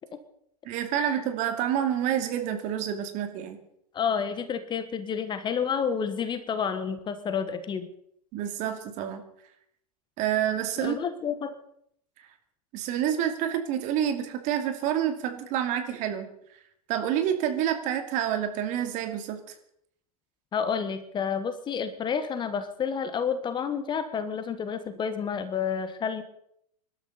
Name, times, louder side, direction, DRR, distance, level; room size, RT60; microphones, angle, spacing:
voice 1, 0.6-3.6 8.3-9.2 10.2-11.0 12.7-16.3 16.9-19.4, right 10 dB, 40° right, 6 dB, 2.5 m, -28 dB
voice 2, 3.9-7.9 10.8-11.5 20.5-26.2, left 7 dB, 25° left, 11 dB, 1.3 m, -30 dB
25.5 x 12.5 x 4.1 m, 0.72 s
figure-of-eight pair, 95°, 20 cm